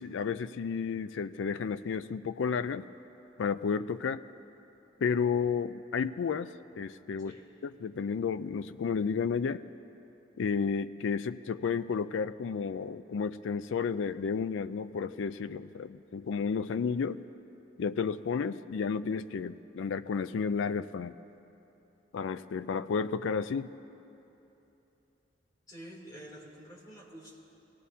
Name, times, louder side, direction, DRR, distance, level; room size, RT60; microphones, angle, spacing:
voice 1, 0.0-2.9 3.4-4.2 5.0-6.5 6.8-7.4 7.8-9.6 10.4-17.2 17.8-21.1 22.1-23.7, left 5 dB, 85° left, 12 dB, 0.4 m, -32 dB
voice 2, 25.7-27.4, right 1 dB, 20° left, -6 dB, 3.1 m, -48 dB
24.5 x 17.5 x 2.8 m, 3.0 s
head